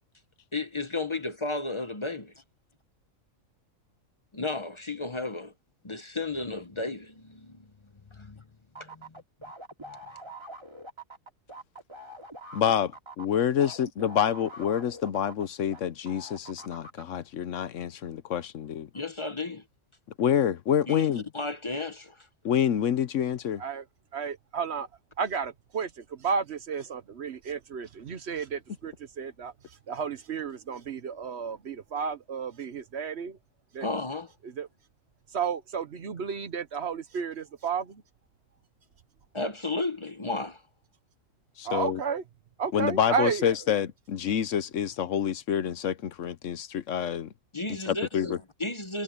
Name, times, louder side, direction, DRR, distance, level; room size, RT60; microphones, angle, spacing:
voice 1, 0.5-2.2 4.3-5.5 5.8-7.7 8.1-8.4 8.8-9.0 13.6-13.7 18.9-19.6 20.9-21.1 21.3-22.3 33.8-34.3 39.3-40.6 47.5-49.0, left 3 dB, 25° left, 0.9 m, -33 dB
sound 1, 8.7-15.8 16.1-17.0, right 1 dB, 20° right, 2.8 m, -44 dB
voice 2, 12.5-18.9 20.2-21.2 22.4-23.6 41.6-42.0 42.7-47.3 47.9-48.4, left 9 dB, 70° left, 1.1 m, -27 dB
voice 3, 24.1-24.9 25.2-29.5 29.9-33.4 33.7-33.9 34.4-34.7 35.3-38.0 41.6-42.2 42.6-43.5, right 6 dB, 55° right, 1.1 m, -32 dB
omnidirectional pair, 1.4 m